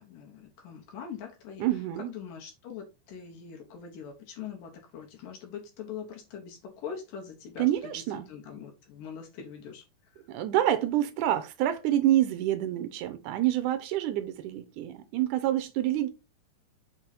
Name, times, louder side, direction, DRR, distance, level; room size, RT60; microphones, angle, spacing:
voice 1, 0.0-1.6 2.0-9.8, left 7 dB, 75° left, 2.8 m, -42 dB
voice 2, 1.6-2.1 7.6-8.3 10.3-16.1, right 13 dB, 80° right, 2.0 m, -27 dB
6.1 x 3.9 x 4.2 m
omnidirectional pair, 4.0 m